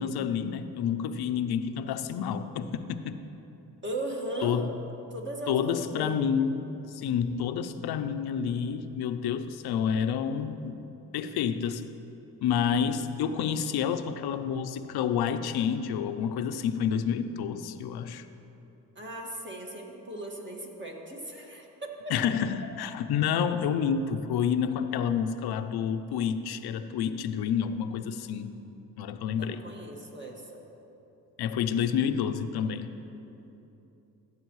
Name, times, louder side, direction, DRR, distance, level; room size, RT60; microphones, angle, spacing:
voice 1, 0.0-3.2 4.4-4.7 5.5-6.6 6.9-10.8 11.1-11.8 12.4-18.3 22.1-28.5 29.0-29.6 31.4-32.9, left 7 dB, 70° left, 10 dB, 0.6 m, -29 dB
voice 2, 3.8-4.6 5.1-6.2 13.7-14.0 19.0-22.1 29.3-30.6, right 1 dB, 30° right, 0 dB, 1.8 m, -38 dB
14.0 x 7.6 x 3.1 m, 2.9 s
supercardioid pair, 50°, 40 cm